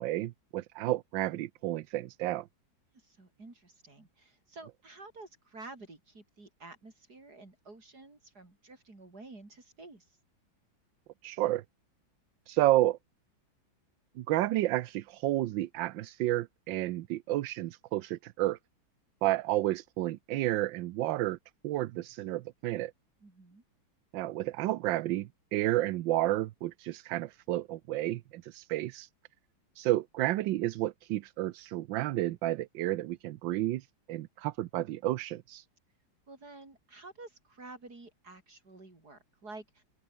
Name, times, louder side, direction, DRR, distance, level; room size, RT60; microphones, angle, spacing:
voice 1, 0.0-2.5 11.2-11.6 12.5-13.0 14.2-18.6 19.2-21.4 21.6-22.9 24.1-29.1 29.8-35.6, right 15 dB, 75° right, 1.4 m, -31 dB
voice 2, 2.9-10.2 23.2-23.6 36.3-39.8, right 3 dB, 50° right, 5.8 m, -50 dB
open air
omnidirectional pair, 2.2 m